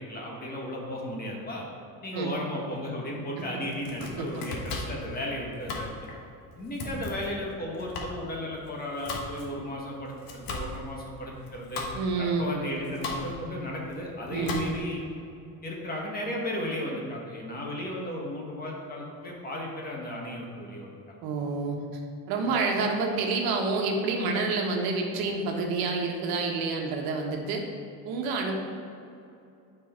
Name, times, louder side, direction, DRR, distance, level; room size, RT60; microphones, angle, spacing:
voice 1, 0.0-1.6 2.0-5.9 6.6-11.8 12.2-15.0 15.6-20.9, left 1 dB, 25° left, -2 dB, 1.3 m, -35 dB
Domestic sounds home sounds, 3.6-15.0, left 3 dB, 70° left, 1.4 m, -39 dB
voice 2, 11.9-12.5 14.3-14.7 21.2-21.8 22.3-27.6 28.0-28.6, right 3 dB, 75° right, 1 dB, 1.3 m, -28 dB
9.2 x 4.8 x 4.4 m, 2.6 s
cardioid pair, 155°, 36 cm